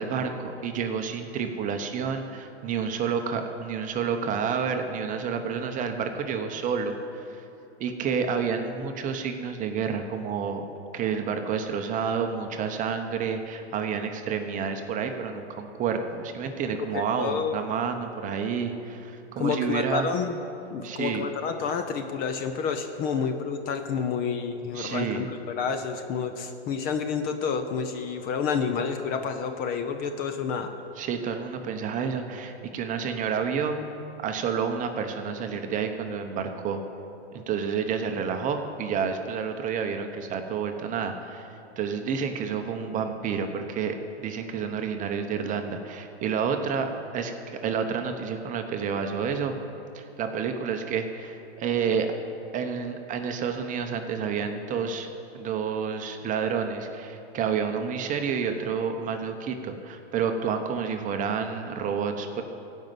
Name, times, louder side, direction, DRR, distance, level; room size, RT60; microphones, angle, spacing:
voice 1, 0.0-7.0 7.3-7.4 7.8-10.6 10.9-20.1 20.8-21.3 24.7-25.3 31.0-33.8 34.2-36.8 37.3-41.5 41.8-49.6 49.9-52.1 52.5-55.1 55.3-62.4, right 6 dB, 25° right, 6 dB, 0.8 m, -29 dB
voice 2, 16.8-17.5 19.4-20.4 20.7-30.8, left 6 dB, 25° left, 7 dB, 0.6 m, -29 dB
15.5 x 5.5 x 7.7 m, 2.7 s
hypercardioid pair, 130°, 33 cm